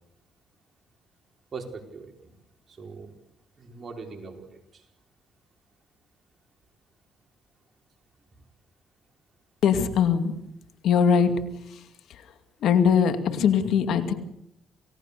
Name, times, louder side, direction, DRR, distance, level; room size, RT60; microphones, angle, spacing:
voice 1, 1.5-2.3 2.7-3.1 3.6-4.9, right 4 dB, 40° right, 3 dB, 4.6 m, -41 dB
voice 2, 9.6-10.3 10.8-11.4 11.7-12.3 12.6-14.1, left 7 dB, 75° left, 8 dB, 2.4 m, -22 dB
28.5 x 18.0 x 6.8 m, 0.79 s
cardioid pair, 90°, 0 cm